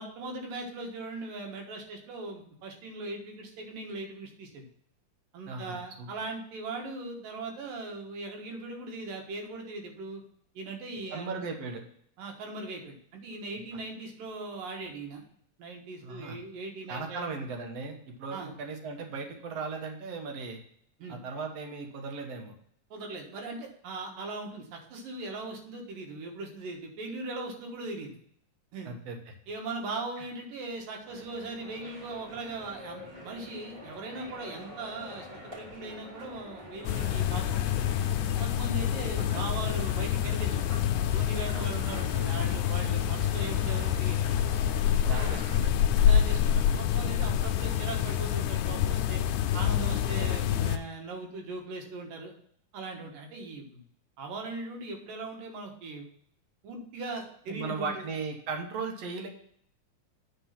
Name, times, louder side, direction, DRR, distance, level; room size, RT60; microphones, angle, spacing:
voice 1, 0.0-4.6 5.3-10.2 10.5-11.4 12.2-15.2 15.6-17.3 18.3-18.5 21.0-21.2 22.9-28.1 28.7-28.9 29.5-35.3 35.6-37.9 38.4-40.6 41.0-44.3 45.0-45.4 46.0-49.2 49.5-52.3 52.7-53.8 54.2-56.1 56.6-58.1, right 3 dB, 85° right, 2 dB, 3.2 m, -39 dB
voice 2, 5.5-6.1 11.1-11.8 16.0-16.4 16.9-20.6 21.1-22.5 28.9-29.2 39.2-39.4 41.5-41.8 45.1-45.7 47.2-47.4 57.5-59.3, right 4 dB, 60° right, 3 dB, 2.1 m, -37 dB
sound 1, 31.0-45.7, equal, 25° right, 2.3 m, -47 dB
sound 2, 36.8-50.8, left 9 dB, 80° left, 2.1 m, -27 dB
9.1 x 4.7 x 5.7 m, 0.64 s
omnidirectional pair, 3.8 m